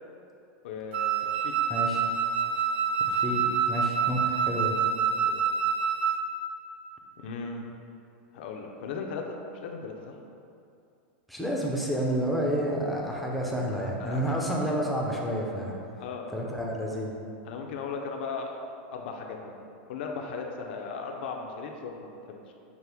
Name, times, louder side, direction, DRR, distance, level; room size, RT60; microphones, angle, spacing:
voice 1, 0.6-1.5 5.2-5.4 7.2-7.7 8.3-10.2 14.0-14.4 16.0-16.3 17.4-18.6 18.9-22.5, left 5 dB, 70° left, 2 dB, 0.5 m, -37 dB
Wind instrument woodwind instrument, 0.9-6.3, right 6 dB, 70° right, 0.3 m, -27 dB
voice 2, 1.7-2.0 3.1-4.8 11.3-15.7 16.3-17.2, equal, ahead, -3 dB, 0.5 m, -29 dB
5.9 x 2.1 x 3.4 m, 2.5 s
supercardioid pair, 140°, 6 cm